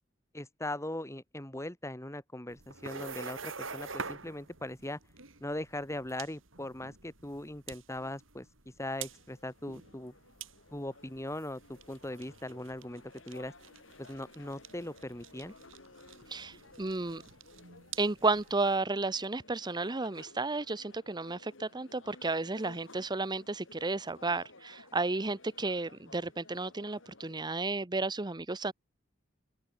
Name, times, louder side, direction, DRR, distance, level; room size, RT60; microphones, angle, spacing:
voice 1, 0.3-5.0 5.4-8.5 8.8-10.1 10.7-13.5 14.0-15.5, left 1 dB, 15° left, 3.4 m, -40 dB
sound 1, 2.5-18.8, right 5 dB, 85° right, 6.3 m, -47 dB
sound 2, 8.9-27.5, left 3 dB, 75° left, 4.6 m, -57 dB
voice 2, 16.3-17.2 18.0-28.7, right 3 dB, 20° right, 0.9 m, -32 dB
open air
head